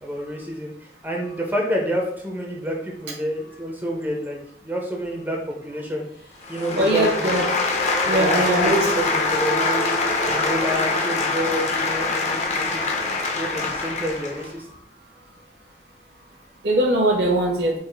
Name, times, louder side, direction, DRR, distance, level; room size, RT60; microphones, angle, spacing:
voice 1, 0.0-6.1 6.5-7.3 8.1-9.9 10.2-12.9 13.3-14.7, equal, 10° right, 0 dB, 0.5 m, -28 dB
sound 1, 6.4-14.5, left 3 dB, 40° left, 0.5 m, -24 dB
sound 2, 6.5-13.6, left 1 dB, 70° left, 0.9 m, -32 dB
voice 2, 6.7-7.4 8.1-8.8 16.6-17.7, right 1 dB, 70° right, -2 dB, 0.9 m, -20 dB
3.8 x 2.4 x 3.2 m, 0.72 s
head